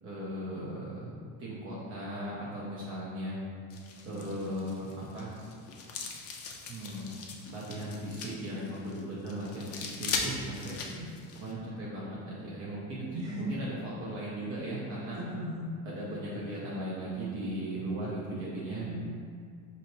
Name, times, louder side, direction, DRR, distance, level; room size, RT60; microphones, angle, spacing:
voice 1, 0.0-3.4 4.0-5.3 6.7-7.1 7.5-10.8 11.3-13.1 13.4-15.2 15.9-18.9, right 1 dB, 30° right, -6 dB, 0.6 m, -37 dB
sound 1, 3.7-11.5, left 4 dB, 35° left, 0.4 m, -40 dB
voice 2, 13.1-13.7 15.1-15.8 18.8-19.0, equal, 55° right, -6 dB, 1.3 m, -38 dB
4.3 x 2.7 x 2.9 m, 2.1 s
cardioid pair, 120°, 43 cm